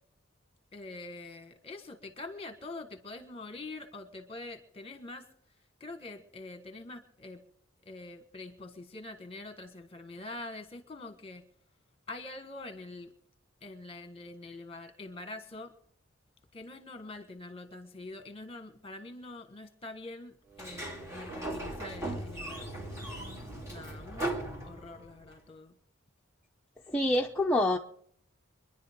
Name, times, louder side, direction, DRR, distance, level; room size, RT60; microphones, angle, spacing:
voice 1, 0.7-5.3 5.8-7.4 7.8-11.5 12.1-13.1 13.6-15.7 16.5-22.9 23.7-24.3 24.6-25.7, left 2 dB, 30° left, 7 dB, 1.5 m, -45 dB
Sliding door, 20.5-25.3, right 1 dB, 15° right, 2.5 m, -38 dB
voice 2, 26.9-27.8, left 1 dB, 5° left, 0 dB, 0.6 m, -26 dB
25.0 x 11.0 x 3.7 m, 0.65 s
head